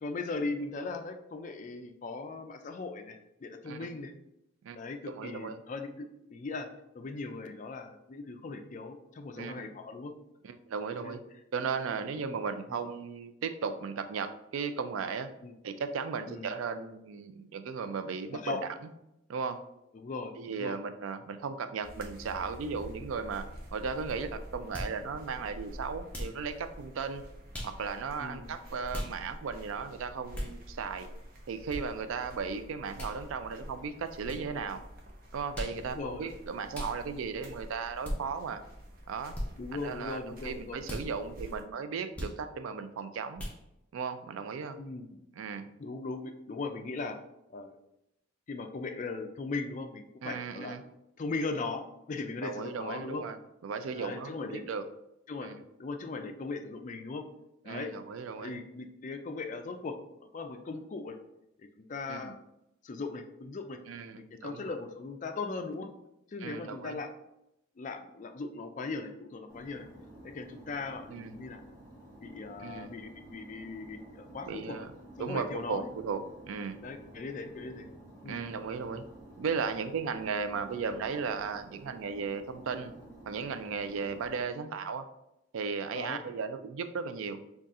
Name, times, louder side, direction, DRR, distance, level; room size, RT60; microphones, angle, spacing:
voice 1, 0.0-4.1 4.7-6.7 6.9-10.1 11.0-11.2 15.4-15.5 16.3-16.5 18.3-18.6 19.9-20.8 28.2-28.5 35.9-36.2 39.6-40.8 44.8-45.2 45.8-47.2 47.5-47.8 48.5-50.8 51.2-53.2 53.9-54.7 55.3-55.5 55.8-57.3 57.6-57.9 58.4-60.0 60.3-61.2 61.6-62.4 62.8-63.8 64.4-65.9 66.3-67.1 67.8-69.9 70.2-71.7 72.2-74.9 75.2-75.9 76.8-77.9 78.2-78.4 85.9-86.2, left 3 dB, 35° left, 6 dB, 0.3 m, -38 dB
voice 2, 5.1-5.6 9.4-9.7 10.4-11.2 11.5-15.3 15.6-18.6 19.3-19.6 20.4-23.5 23.7-27.2 27.6-31.1 31.5-34.8 35.3-38.6 39.1-39.4 39.8-43.4 43.9-44.8 45.4-45.7 50.2-50.8 52.4-53.4 53.6-54.8 55.4-55.6 57.7-58.6 62.1-62.3 63.9-64.7 66.4-67.0 71.1-71.3 72.6-72.9 74.4-74.9 75.2-76.2 76.5-76.8 78.2-79.0 79.4-82.9 83.3-85.1 85.5-87.4, right 5 dB, 75° right, 10 dB, 0.3 m, -36 dB
sound 1, 21.8-41.6, equal, 45° right, 0.7 m, -48 dB
sound 2, 24.7-25.0 26.1-26.4 27.5-27.8 28.9-29.1 30.3-30.5 31.7-31.8 33.0-33.2 34.3-34.4 35.5-35.8 36.7-37.0 38.0-38.2 39.3-39.5 40.8-41.1 42.1-42.4 43.4-43.6, equal, 5° left, 0.6 m, -37 dB
sound 3, 69.5-84.4, right 1 dB, 20° right, 1.0 m, -52 dB
4.0 x 2.4 x 3.6 m, 0.85 s
head